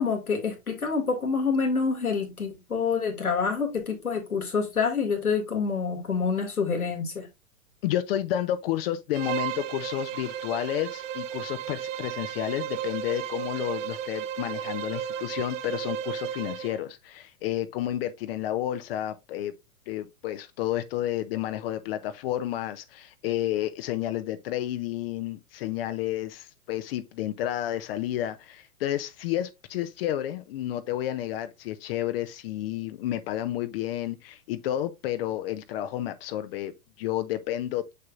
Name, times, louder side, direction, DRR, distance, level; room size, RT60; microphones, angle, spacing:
voice 1, 0.0-7.3, left 5 dB, 90° left, 2.3 m, -27 dB
voice 2, 7.8-19.5 19.9-37.9, left 12 dB, 45° left, 0.7 m, -31 dB
Bowed string instrument, 9.1-16.8, right 10 dB, 60° right, 0.7 m, -34 dB
6.7 x 6.6 x 2.5 m
hypercardioid pair, 110°, 43 cm